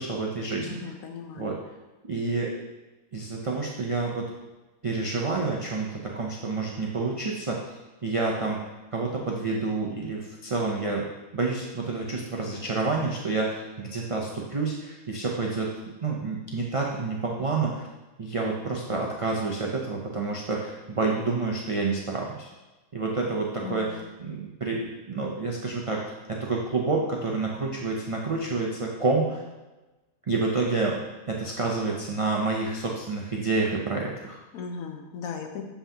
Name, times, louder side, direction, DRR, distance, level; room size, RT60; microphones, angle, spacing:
voice 1, 0.0-0.9 1.4-1.6 2.0-2.5 3.1-4.3 4.8-8.7 8.9-11.0 11.3-15.7 16.0-17.9 18.2-22.5 22.9-29.4 30.3-31.0 31.3-34.4, right 3 dB, 50° right, -2 dB, 0.4 m, -28 dB
voice 2, 0.7-1.6 23.6-24.0 34.5-35.6, left 6 dB, 75° left, 4 dB, 1.1 m, -37 dB
7.0 x 5.6 x 2.8 m, 1.1 s
omnidirectional pair, 1.5 m